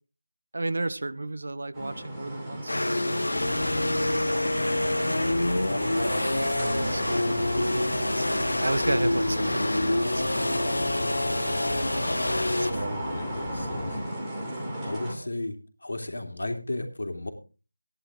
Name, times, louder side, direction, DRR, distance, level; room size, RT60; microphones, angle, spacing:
voice 1, 0.5-4.8 5.9-10.3 10.6-11.5 12.6-13.0, right 2 dB, 50° right, 0.9 m, -34 dB
sound 1, 1.7-15.1, right 1 dB, 5° right, 2.5 m, -36 dB
sound 2, 2.7-12.7, left 1 dB, 90° left, 0.9 m, -27 dB
sound 3, 3.3-14.0, left 2 dB, 25° left, 1.5 m, -37 dB
voice 2, 12.7-14.0 14.8-17.3, left 2 dB, 65° left, 3.2 m, -35 dB
16.0 x 11.0 x 3.8 m
figure-of-eight pair, 175°, 0 cm